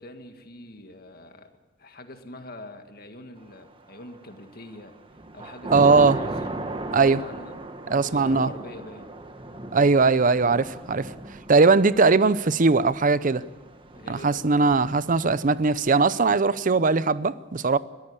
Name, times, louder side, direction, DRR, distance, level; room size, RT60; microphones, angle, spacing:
voice 1, 0.0-1.5 1.8-4.9 5.3-6.3 7.0-7.6 7.8-9.1 13.9-14.8, left 1 dB, 55° left, 1.8 m, -44 dB
Thunder / Rain, 3.8-4.3 4.8-15.9, right 2 dB, 30° right, 1.4 m, -37 dB
voice 2, 5.7-6.2 6.9-7.2 7.9-8.5 9.7-11.1 11.5-13.4 14.1-17.8, right 4 dB, 45° right, 0.6 m, -20 dB
22.0 x 14.5 x 8.5 m
head